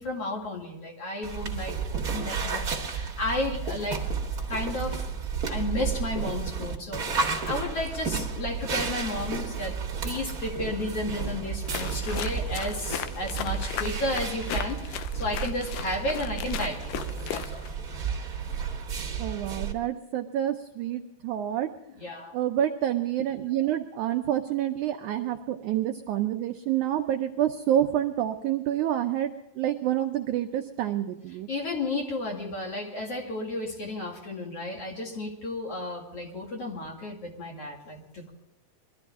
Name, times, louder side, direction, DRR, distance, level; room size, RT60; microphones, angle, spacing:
voice 1, 0.0-4.0 4.5-5.1 5.5-9.7 10.0-17.6 22.0-22.3 31.5-38.3, left 2 dB, 45° left, 0 dB, 2.9 m, -33 dB
sound 1, 1.2-19.7, right 6 dB, 45° right, 1.2 m, -32 dB
sound 2, 11.6-17.8, left 12 dB, 80° left, 2.0 m, -37 dB
voice 2, 19.2-21.7 22.3-31.5, right 11 dB, 80° right, 5 dB, 1.7 m, -28 dB
22.5 x 13.0 x 3.6 m, 0.95 s
omnidirectional pair, 4.3 m